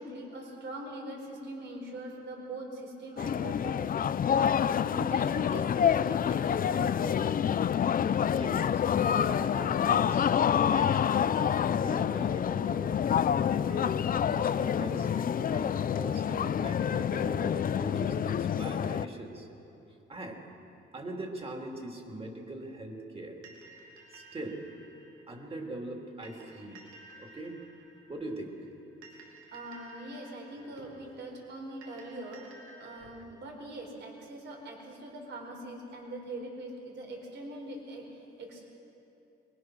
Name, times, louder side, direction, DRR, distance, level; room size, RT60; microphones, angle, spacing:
voice 1, 0.0-3.9 4.3-4.6 4.9-7.6 29.5-32.4 32.8-38.6, right 1 dB, 65° right, 1 dB, 4.8 m, -42 dB
sound 1, 3.2-19.1, left 8 dB, 45° left, 0.6 m, -27 dB
voice 2, 8.3-12.9 13.6-19.5 20.1-20.4 20.9-23.4 24.1-24.6 25.3-26.9 27.2-27.6 28.1-28.6, right 2 dB, 30° right, 1 dB, 3.4 m, -41 dB
sound 2, 23.4-33.2, right 3 dB, 90° right, 2.8 m, -55 dB
23.5 x 21.5 x 6.3 m, 2.9 s
cardioid pair, 90°, 20 cm